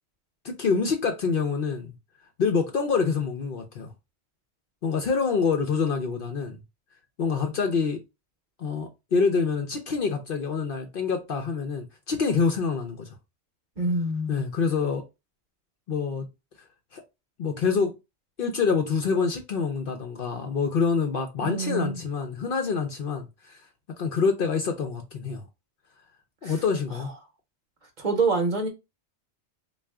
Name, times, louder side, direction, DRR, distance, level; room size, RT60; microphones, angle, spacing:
voice 1, 0.4-1.9 2.4-3.9 4.8-6.6 7.2-8.0 8.6-13.1 14.3-15.0 15.9-16.3 16.9-17.0 17.4-17.9 18.4-23.6 24.0-25.4 26.4-27.1, left 5 dB, 60° left, 0.7 m, -26 dB
voice 2, 13.8-14.5 21.4-22.0 26.4-26.6 28.0-28.7, right 3 dB, 45° right, 0.8 m, -26 dB
3.7 x 2.4 x 3.3 m
omnidirectional pair, 1.1 m